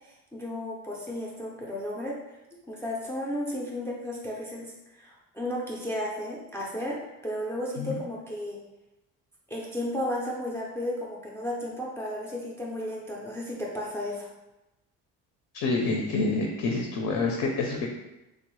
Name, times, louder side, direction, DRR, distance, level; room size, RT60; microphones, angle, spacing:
voice 1, 0.0-2.2 2.7-7.0 7.2-8.6 9.5-14.3, left 1 dB, 10° left, -4 dB, 0.3 m, -34 dB
voice 2, 15.5-17.9, left 3 dB, 60° left, 1 dB, 0.5 m, -27 dB
3.0 x 2.0 x 3.0 m, 0.95 s
cardioid pair, 130°, 32 cm